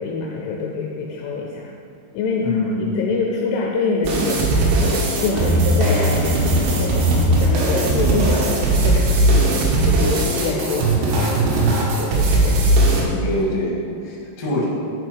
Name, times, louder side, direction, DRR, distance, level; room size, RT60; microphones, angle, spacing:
voice 1, 0.0-1.7 2.1-2.5 2.9-12.7, left 4 dB, 80° left, -1 dB, 2.9 m, -26 dB
voice 2, 2.4-2.9 13.2-14.7, left 2 dB, 50° left, -5 dB, 2.1 m, -24 dB
sound 1, 4.0-13.0, right 2 dB, 70° right, 3.1 m, -18 dB
11.0 x 5.5 x 4.7 m, 2.5 s
omnidirectional pair, 6.0 m